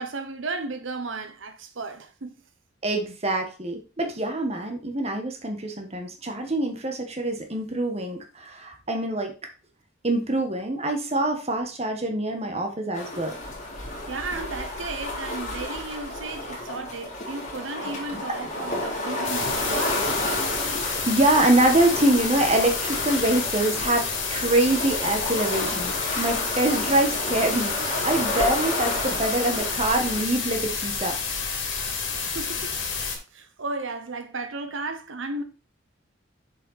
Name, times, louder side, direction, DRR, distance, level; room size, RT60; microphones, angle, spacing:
voice 1, 0.0-2.3 14.1-20.1 32.2-32.7 33.3-35.4, right 3 dB, 80° right, 0.9 m, -34 dB
voice 2, 2.8-9.3 10.0-13.3 20.8-31.1, right 1 dB, 30° right, 1.3 m, -25 dB
sound 1, 12.9-30.2, left 1 dB, 40° left, 2.5 m, -31 dB
sound 2, 19.2-33.2, left 5 dB, 80° left, 2.4 m, -30 dB
6.6 x 5.4 x 4.1 m
head